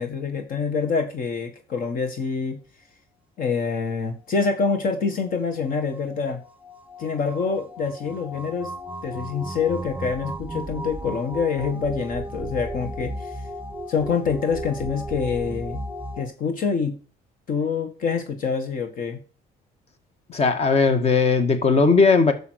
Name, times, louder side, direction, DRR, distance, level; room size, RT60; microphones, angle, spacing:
voice 1, 0.0-2.6 3.4-6.4 7.0-8.7 9.0-13.4 13.9-15.8 16.2-17.0 17.5-19.2, left 5 dB, 55° left, 1.6 m, -26 dB
sound 1, 5.0-16.3, right 1 dB, 10° right, 1.9 m, -35 dB
voice 2, 20.3-22.3, left 4 dB, 40° left, 1.8 m, -18 dB
11.0 x 7.2 x 6.4 m
cardioid pair, 110°, 17 cm